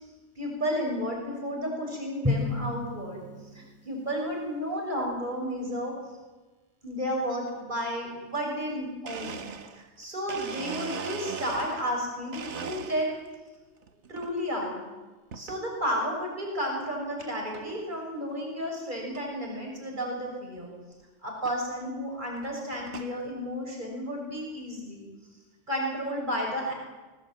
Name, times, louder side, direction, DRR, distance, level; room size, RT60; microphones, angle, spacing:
voice 1, 0.3-3.2 3.5-5.9 6.8-9.4 9.7-13.2 14.1-14.8 15.3-20.7 21.2-25.1 25.7-26.7, equal, 40° right, -1 dB, 6.8 m, -32 dB
Drum, 2.2-4.0, left 2 dB, 10° right, 1.5 m, -31 dB
Domestic sounds home sounds, 8.7-8.8 9.1-12.0 12.3-13.4 13.8-14.3 15.3-15.6 16.2-16.3 17.2-17.3 17.5-17.9 18.3-18.4 18.6-18.7 19.1-19.2 20.6-20.7 21.5-21.6 22.2-23.2, right 6 dB, 75° right, 1.5 m, -39 dB
24.0 x 18.0 x 9.2 m, 1.2 s
omnidirectional pair, 1.2 m